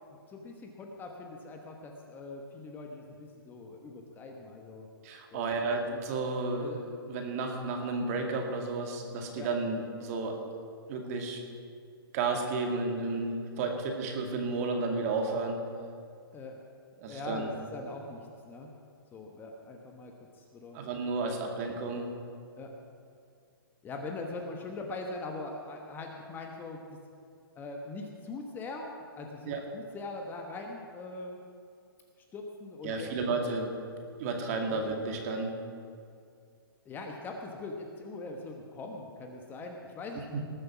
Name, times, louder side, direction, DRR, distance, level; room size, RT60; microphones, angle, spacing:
voice 1, 0.3-4.9 5.3-5.5 6.6-6.8 9.4-9.5 16.3-16.6 17.1-18.7 19.1-20.8 21.5-21.6 22.6-22.7 23.8-27.0 27.5-31.4 32.3-33.3 34.6-34.8 36.8-40.4, left 3 dB, 15° left, 2 dB, 1.2 m, -42 dB
voice 2, 5.0-6.7 7.1-10.4 10.9-11.4 12.1-15.6 17.0-17.5 20.7-22.1 29.5-29.6 32.8-33.7 34.2-35.5, right 3 dB, 40° right, 2 dB, 2.2 m, -32 dB
19.5 x 7.6 x 6.1 m, 2.3 s
hypercardioid pair, 145°, 13 cm